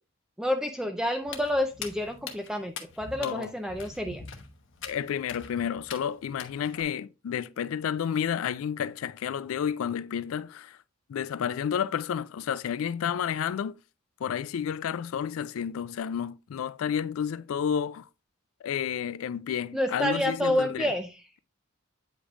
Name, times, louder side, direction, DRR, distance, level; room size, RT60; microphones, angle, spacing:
voice 1, 0.4-4.2 19.7-21.2, left 1 dB, 5° right, 0.4 m, -29 dB
Walk footsteps, 1.2-6.8, left 6 dB, 65° left, 1.0 m, -43 dB
voice 2, 3.2-3.5 4.8-10.8 11.1-13.8 14.2-18.1 18.6-20.9, left 8 dB, 80° left, 0.3 m, -31 dB
8.5 x 5.2 x 2.4 m
head